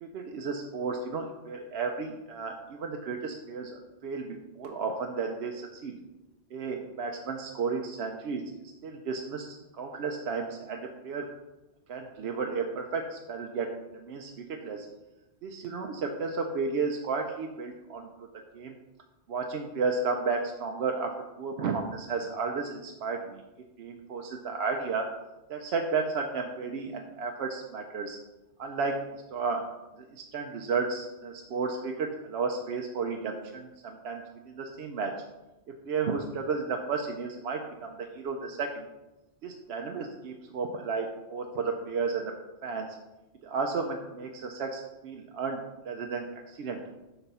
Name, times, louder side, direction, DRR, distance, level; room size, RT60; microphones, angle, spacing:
voice 1, 0.0-3.7 4.0-5.9 6.5-11.3 11.9-13.7 13.9-14.9 15.4-18.1 18.5-18.7 19.3-21.1 21.4-23.4 23.8-25.1 25.5-28.2 28.6-29.7 30.0-35.1 35.8-38.9 39.4-42.3 42.6-43.0 43.4-46.9, right 4 dB, 70° right, 3 dB, 0.8 m, -33 dB
8.0 x 3.4 x 5.5 m, 1.0 s
omnidirectional pair, 1.2 m